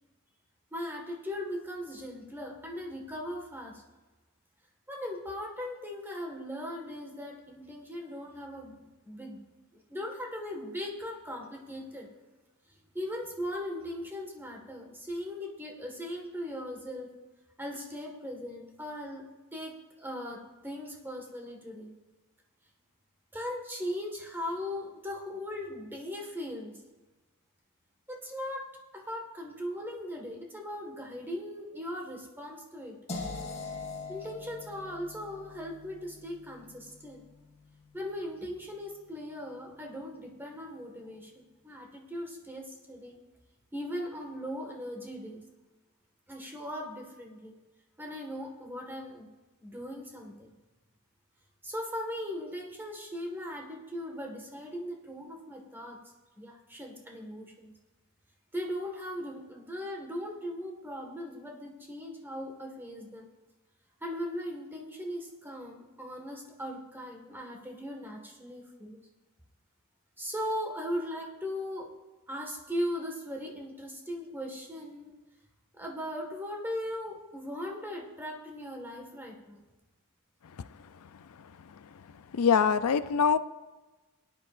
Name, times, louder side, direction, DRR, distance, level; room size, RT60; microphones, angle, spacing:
voice 1, 0.7-3.8 4.9-9.4 9.7-12.1 12.9-17.1 17.6-19.3 19.5-21.9 23.3-26.8 28.1-28.6 28.9-33.0 34.1-37.2 37.9-43.2 43.7-45.4 46.3-47.5 48.0-49.3 49.6-50.5 51.6-56.0 56.4-57.7 58.5-63.3 64.0-69.0 70.2-71.9 72.3-75.1 75.7-79.6, equal, 10° right, 0 dB, 1.7 m, -39 dB
sound 1, 33.1-39.0, left 3 dB, 30° left, 2.3 m, -43 dB
voice 2, 82.3-83.4, left 6 dB, 80° left, 13 dB, 0.5 m, -23 dB
17.5 x 10.0 x 2.6 m, 1.2 s
head